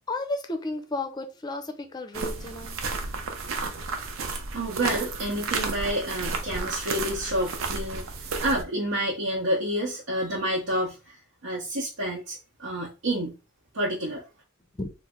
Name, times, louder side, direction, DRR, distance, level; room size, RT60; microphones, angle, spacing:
voice 1, 0.1-2.8 14.8-14.9, left 2 dB, 20° left, 0.4 m, -33 dB
sound 1, 2.1-8.6, right 4 dB, 65° right, 0.5 m, -32 dB
voice 2, 4.3-8.1 8.4-11.1 11.4-13.4 13.7-14.2, right 1 dB, 85° right, 0.9 m, -29 dB
3.1 x 2.0 x 3.5 m
head